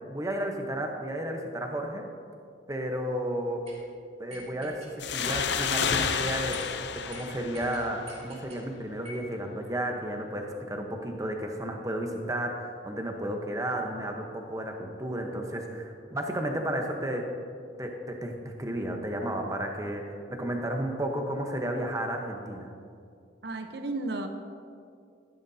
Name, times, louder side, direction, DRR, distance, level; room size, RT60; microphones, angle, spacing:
voice 1, 0.1-2.0 2.7-3.6 4.2-4.8 5.1-6.6 7.1-17.2 17.8-22.7, right 1 dB, 15° right, 2 dB, 1.0 m, -32 dB
sound 1, 3.7-3.8 4.3-4.9 5.2-5.7 6.0-6.2 6.5-6.7 7.1-7.2 7.5-8.6 9.0-9.3, right 2 dB, 35° right, 2.6 m, -46 dB
sound 2, 5.0-8.4, left 6 dB, 65° left, 0.6 m, -30 dB
voice 2, 23.4-24.3, right 2 dB, 60° right, 6 dB, 0.8 m, -33 dB
14.5 x 11.5 x 2.8 m, 2.3 s
head